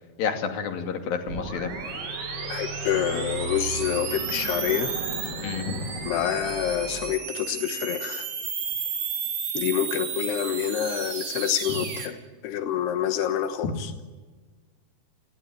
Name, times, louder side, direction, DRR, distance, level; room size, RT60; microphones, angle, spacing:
voice 1, 0.2-1.7 5.4-5.9 13.6-13.7, left 6 dB, 65° left, 5 dB, 4.3 m, -29 dB
sound 1, 1.3-12.1, right 6 dB, 65° right, 5.0 m, -33 dB
sound 2, 1.7-7.1, right 1 dB, 40° left, 7.5 m, -36 dB
voice 2, 2.5-4.9 6.1-8.3 9.5-12.2 12.4-13.9, left 10 dB, 90° left, 8 dB, 3.3 m, -27 dB
29.5 x 19.0 x 9.2 m, 1.4 s
omnidirectional pair, 4.6 m